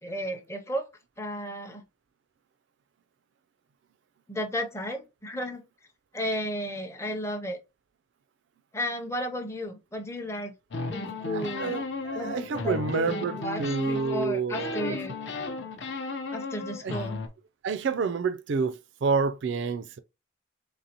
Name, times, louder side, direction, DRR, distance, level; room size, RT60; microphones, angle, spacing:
voice 1, 0.0-0.8 1.2-1.8 4.3-5.6 6.1-7.6 8.7-10.5 10.9-11.8 12.2-15.1 16.3-17.2, equal, 15° left, 0.5 m, -33 dB
sound 1, 10.7-14.3 14.5-17.3, left 3 dB, 65° left, 0.7 m, -34 dB
voice 2, 11.3-15.0 16.8-17.0 17.6-20.0, right 5 dB, 65° right, 0.4 m, -29 dB
3.9 x 3.6 x 2.8 m
head